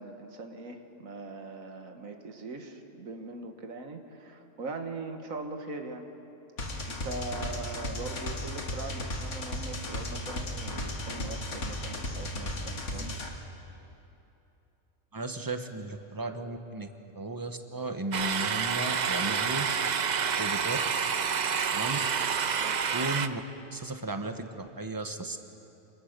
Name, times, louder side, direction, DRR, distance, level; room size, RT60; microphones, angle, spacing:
voice 1, 0.0-6.1 6.9-13.2 22.5-22.8, right 3 dB, 90° right, 5 dB, 1.9 m, -41 dB
sound 1, 6.6-13.3, left 1 dB, 65° left, 2.3 m, -35 dB
voice 2, 15.1-16.9 17.1-19.7 20.4-20.8 21.7-22.0 22.9-23.4 23.7-25.4, right 2 dB, 15° right, 7 dB, 1.0 m, -35 dB
sound 2, 18.1-23.3, right 6 dB, 45° right, 0.6 m, -28 dB
26.0 x 19.5 x 6.7 m, 2.9 s
omnidirectional pair, 1.4 m